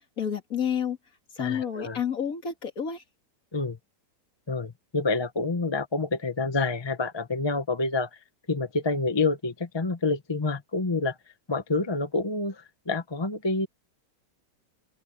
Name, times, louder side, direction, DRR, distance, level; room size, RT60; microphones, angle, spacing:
voice 1, 0.2-1.0 1.4-3.0, left 8 dB, 50° left, 2.5 m, -29 dB
voice 2, 1.4-2.0 3.5-3.8 4.5-8.1 8.5-11.1 11.5-12.6 12.9-13.7, left 3 dB, 20° left, 0.9 m, -27 dB
omnidirectional pair, 1.9 m